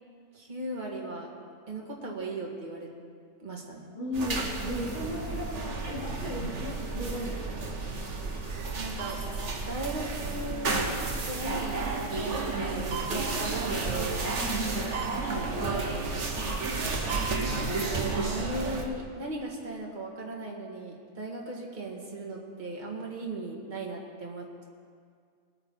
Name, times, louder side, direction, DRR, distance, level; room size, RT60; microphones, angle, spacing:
voice 1, 0.3-1.3 1.7-2.9 3.4-3.9 8.7-9.2 9.7-11.0 11.2-14.3 15.5-16.1 17.4-24.6, right 2 dB, 35° right, -1 dB, 1.8 m, -37 dB
voice 2, 3.9-7.7 14.7-15.3, left 1 dB, 45° left, -9 dB, 3.9 m, -36 dB
sound 1, 4.1-18.8, right 3 dB, 55° right, 1.5 m, -31 dB
20.5 x 9.0 x 4.5 m, 2.2 s
omnidirectional pair, 1.5 m